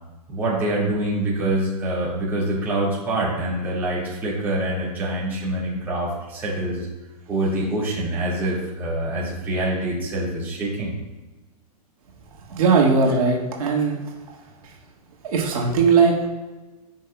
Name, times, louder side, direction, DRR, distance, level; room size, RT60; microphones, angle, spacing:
voice 1, 0.3-6.9 7.3-10.9, right 1 dB, 10° right, -8 dB, 2.1 m, -25 dB
voice 2, 12.5-14.0 15.2-16.3, right 4 dB, 65° right, -2 dB, 1.7 m, -19 dB
10.0 x 5.5 x 2.3 m, 1.2 s
hypercardioid pair, 165°, 20 cm